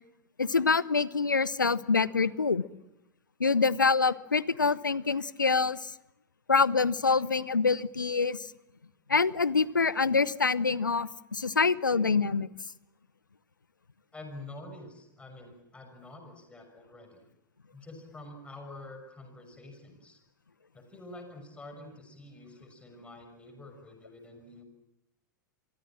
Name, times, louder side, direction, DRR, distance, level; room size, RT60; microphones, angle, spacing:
voice 1, 0.4-2.6 3.4-5.9 6.5-8.5 9.1-12.5, left 4 dB, 80° left, 19 dB, 0.9 m, -26 dB
voice 2, 14.1-17.2 17.7-20.2 20.7-24.6, left 2 dB, 10° left, 5 dB, 6.4 m, -47 dB
29.5 x 23.5 x 7.5 m, 0.89 s
figure-of-eight pair, 90°, 10 cm